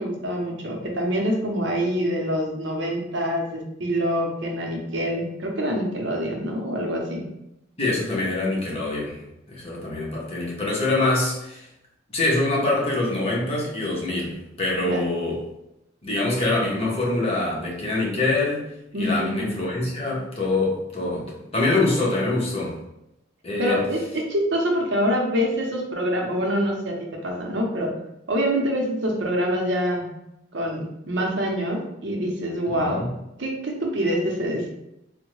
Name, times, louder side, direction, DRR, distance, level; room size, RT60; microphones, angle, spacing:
voice 1, 0.0-7.2 14.8-15.0 18.9-19.5 23.6-27.0 27.2-27.9 28.3-30.1 30.5-33.0 33.4-34.7, equal, 65° right, 1 dB, 0.7 m, -25 dB
voice 2, 7.8-9.2 9.5-11.7 12.1-15.4 16.0-18.7 19.0-22.8 23.4-23.8 32.7-33.1, left 2 dB, 35° left, -4 dB, 0.9 m, -24 dB
3.4 x 2.1 x 3.1 m, 0.85 s
head